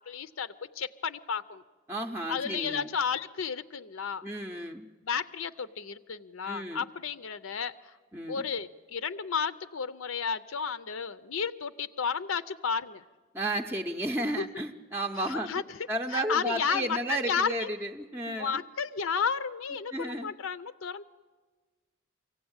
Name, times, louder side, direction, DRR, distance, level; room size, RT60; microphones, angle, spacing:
voice 1, 0.0-1.6 2.3-4.2 5.0-8.0 8.3-13.0 14.4-14.5 15.3-15.8 16.1-17.7 18.3-21.0, left 6 dB, 70° left, 13 dB, 0.6 m, -32 dB
voice 2, 1.9-2.9 4.2-4.9 6.4-6.8 8.1-8.4 13.3-15.5 15.9-18.6 19.9-20.3, right 1 dB, 10° right, 2 dB, 0.6 m, -33 dB
24.0 x 16.0 x 8.8 m, 1.4 s
head